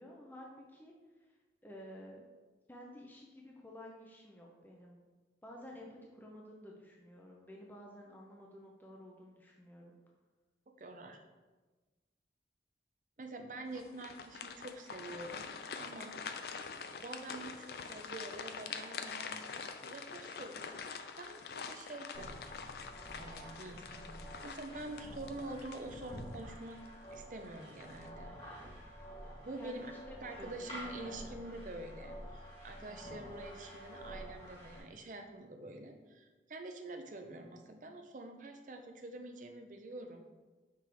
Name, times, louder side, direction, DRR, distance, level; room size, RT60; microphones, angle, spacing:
voice 1, 0.0-1.4 1.6-2.3 2.7-5.0 5.4-10.0 29.6-30.7 31.0-31.6 32.8-33.2, left 1 dB, 10° left, -2 dB, 0.6 m, -52 dB
voice 2, 10.7-11.2 13.2-15.5 15.8-16.2 17.0-19.4 19.8-22.5 23.1-24.1 24.4-26.8 27.1-28.3 29.4-29.9 30.2-40.3, right 2 dB, 45° right, 5 dB, 0.6 m, -46 dB
sound 1, 13.7-26.4 26.8-27.0 27.6-28.1, left 5 dB, 60° left, 0.4 m, -45 dB
sound 2, 22.1-34.8, equal, 30° left, 1.6 m, -49 dB
5.9 x 3.5 x 4.6 m, 1.3 s
head